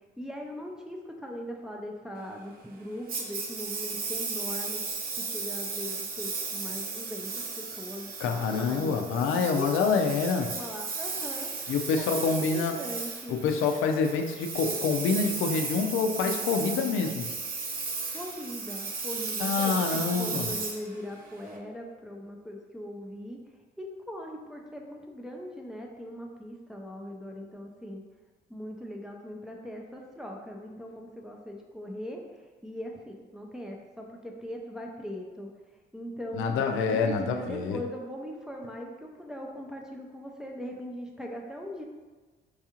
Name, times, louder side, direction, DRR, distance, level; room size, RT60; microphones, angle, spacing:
voice 1, 0.2-4.8 5.2-10.0 10.4-13.4 18.1-23.4 23.8-28.0 28.5-32.2 32.6-35.5 35.9-41.8, equal, 5° right, 0 dB, 0.5 m, -40 dB
Engine, 3.1-21.5, right 4 dB, 50° right, 0.6 m, -35 dB
voice 2, 8.2-10.5 11.7-12.8 13.3-17.3 19.4-20.5 36.3-37.8, left 5 dB, 85° left, 4 dB, 0.4 m, -27 dB
4.6 x 2.4 x 2.8 m, 1.3 s
cardioid pair, 90°, 20 cm